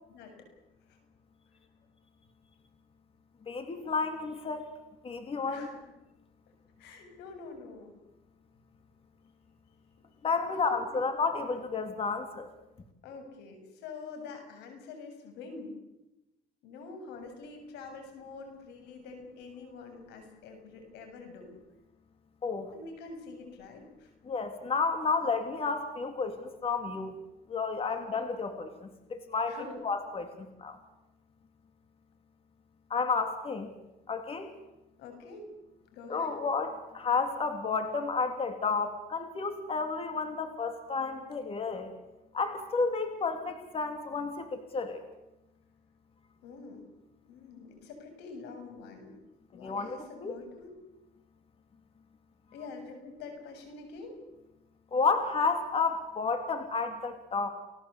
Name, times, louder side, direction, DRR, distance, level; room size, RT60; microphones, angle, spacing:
voice 1, 0.1-0.5 0.9-1.0 5.5-5.8 6.8-7.9 10.5-11.1 13.0-15.8 16.6-21.5 22.7-24.1 27.9-28.2 29.5-29.8 35.0-35.5 35.9-36.3 46.4-46.8 47.3-49.1 49.5-50.7 52.5-54.2, left 4 dB, 90° left, 6 dB, 7.3 m, -46 dB
voice 2, 3.5-4.7 5.0-5.7 10.2-12.5 22.4-22.7 24.3-27.2 27.5-29.6 29.8-30.8 32.9-33.7 34.1-34.5 36.1-41.9 42.3-45.0 49.6-50.3 54.9-57.5, left 4 dB, 35° left, 6 dB, 3.2 m, -31 dB
30.0 x 19.5 x 8.3 m, 0.95 s
cardioid pair, 110°, 17 cm